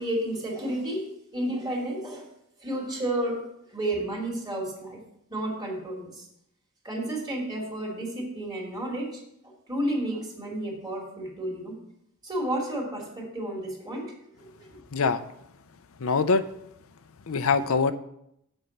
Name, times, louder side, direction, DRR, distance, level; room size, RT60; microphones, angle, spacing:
voice 1, 0.0-2.3 2.6-5.0 5.3-6.3 6.8-11.8 12.2-14.8, right 1 dB, 20° right, -2 dB, 2.6 m, -32 dB
voice 2, 16.0-16.4 17.3-17.9, left 4 dB, 70° left, 11 dB, 0.6 m, -23 dB
7.9 x 5.5 x 7.1 m, 0.76 s
head